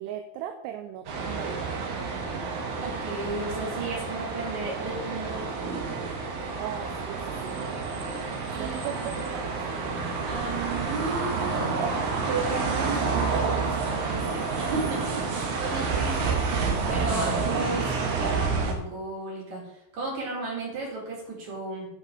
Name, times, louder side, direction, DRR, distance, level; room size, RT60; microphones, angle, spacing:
voice 1, 0.0-2.0 6.6-7.7 8.6-9.6, right 10 dB, 80° right, 7 dB, 2.7 m, -38 dB
sound 1, 1.1-18.7, right 4 dB, 65° right, 3.0 m, -29 dB
voice 2, 2.8-5.5 8.5-9.1 10.2-11.5 12.2-21.9, right 3 dB, 45° right, -5 dB, 4.9 m, -34 dB
8.7 x 6.5 x 6.6 m, 0.80 s
omnidirectional pair, 4.9 m